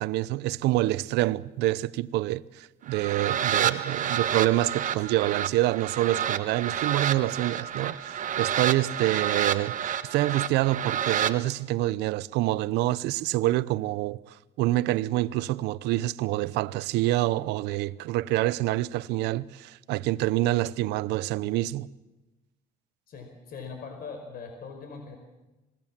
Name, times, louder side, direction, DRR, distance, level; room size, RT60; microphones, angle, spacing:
voice 1, 0.0-14.2 14.6-21.9, right 16 dB, 90° right, 0.7 m, -27 dB
sound 1, 2.9-11.3, right 9 dB, 50° right, 1.3 m, -29 dB
voice 2, 23.1-25.2, left 5 dB, 60° left, 4.8 m, -41 dB
27.5 x 20.5 x 7.4 m
cardioid pair, 110°, 17 cm